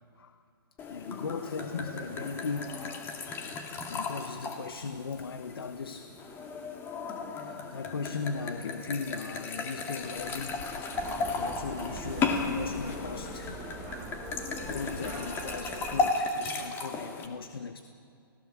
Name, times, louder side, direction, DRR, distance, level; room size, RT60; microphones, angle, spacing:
sound 1, 0.8-17.3, left 4 dB, 20° left, 2.1 m, -35 dB
voice 1, 0.9-2.8 3.8-6.1 7.3-13.7 14.1-14.3 14.6-17.9, left 5 dB, 80° left, 9 dB, 1.2 m, -38 dB
sound 2, 10.0-15.6, left 7 dB, 45° left, 2.0 m, -45 dB
sound 3, 10.9-16.2, right 8 dB, 30° right, 1.7 m, -43 dB
30.0 x 17.5 x 7.4 m, 2.4 s
hypercardioid pair, 145°, 12 cm